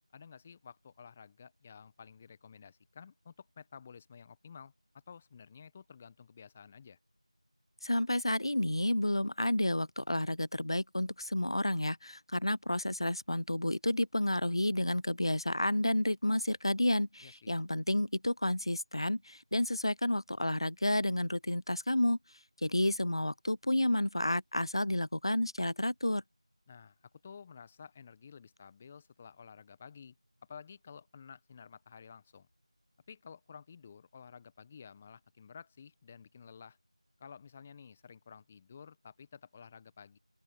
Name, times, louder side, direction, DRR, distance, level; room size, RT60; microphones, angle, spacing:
voice 1, 0.1-7.0 17.2-17.6 26.7-27.0 27.2-30.2 30.5-32.5 33.1-36.8 37.2-40.2, left 6 dB, 5° left, 1.1 m, -52 dB
voice 2, 7.8-22.2 22.6-26.2, left 1 dB, 50° left, 0.6 m, -31 dB
open air
figure-of-eight pair, 175°, 3 cm